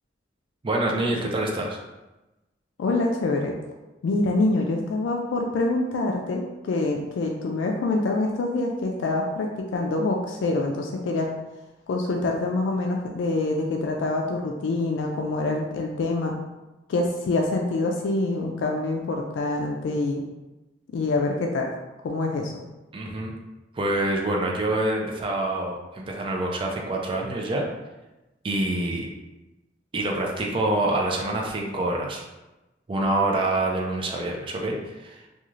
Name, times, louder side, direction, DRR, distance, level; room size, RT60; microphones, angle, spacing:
voice 1, 0.6-1.8 22.9-23.3 23.7-27.7 28.4-29.1 29.9-32.3 32.9-35.2, right 2 dB, 30° right, 0 dB, 0.4 m, -26 dB
voice 2, 2.8-3.5 4.0-11.3 11.9-16.4 16.9-20.2 20.9-21.7 22.0-22.5, left 2 dB, 90° left, 1 dB, 0.3 m, -25 dB
3.0 x 2.3 x 2.4 m, 1.0 s
head